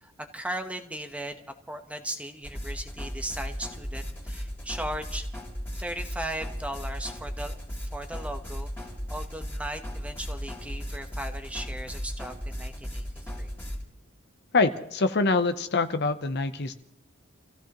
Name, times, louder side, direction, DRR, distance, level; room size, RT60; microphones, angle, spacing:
voice 1, 0.0-1.4 1.7-5.2 5.7-13.5, right 1 dB, 5° right, 6 dB, 1.1 m, -37 dB
sound 1, 2.4-13.8, equal, 10° left, 3.0 m, -36 dB
voice 2, 14.5-16.8, left 3 dB, 55° left, 10 dB, 0.8 m, -25 dB
29.0 x 15.5 x 3.1 m, 0.78 s
head